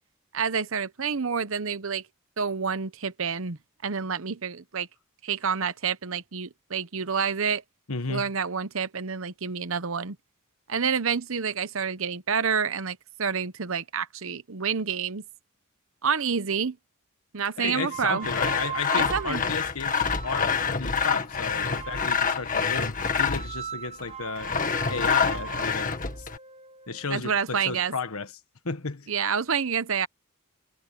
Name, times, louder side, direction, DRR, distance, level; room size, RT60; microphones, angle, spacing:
voice 1, 0.3-2.1 2.4-4.9 5.2-7.6 8.1-10.2 10.7-15.2 16.0-16.8 17.3-18.3 18.9-19.4 27.1-27.9 29.1-30.1, right 6 dB, 65° right, 0.9 m, -28 dB
voice 2, 7.9-8.3 17.6-24.5 24.9-26.3 26.9-28.3 28.6-29.1, left 4 dB, 75° left, 1.4 m, -33 dB
sound 1, 17.8-20.7 21.6-22.6 23.2-27.2, right 8 dB, 25° right, 1.1 m, -40 dB
Sawing, 18.2-23.6 24.4-26.4, left 6 dB, 40° left, 1.8 m, -27 dB
head